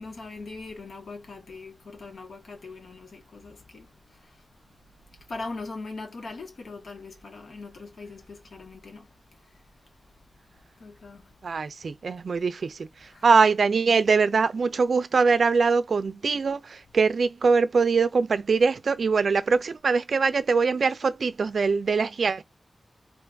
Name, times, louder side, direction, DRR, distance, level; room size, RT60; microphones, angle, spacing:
voice 1, 0.0-4.5 5.1-9.7 10.7-11.6 13.0-13.3, left 3 dB, 75° left, 1.0 m, -41 dB
voice 2, 11.4-12.9 13.2-22.4, right 5 dB, 70° right, 0.4 m, -22 dB
3.1 x 2.3 x 3.3 m
wide cardioid pair, 85°, 0 cm